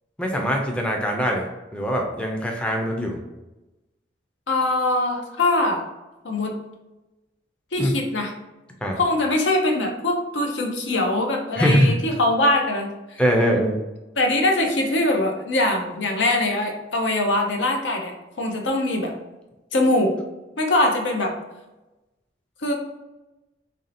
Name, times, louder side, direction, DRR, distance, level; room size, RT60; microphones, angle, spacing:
voice 1, 0.2-1.5 1.7-3.2 7.8-7.9 8.8-9.0 11.6-11.9 13.2-13.8, equal, 5° left, 1 dB, 0.4 m, -22 dB
voice 2, 4.5-5.8 6.2-6.5 7.7-8.3 9.0-13.2 14.2-19.1 19.7-20.1 20.6-21.3 22.6-22.7, left 1 dB, 85° left, 2 dB, 0.7 m, -22 dB
3.2 x 2.7 x 4.1 m, 1.0 s
head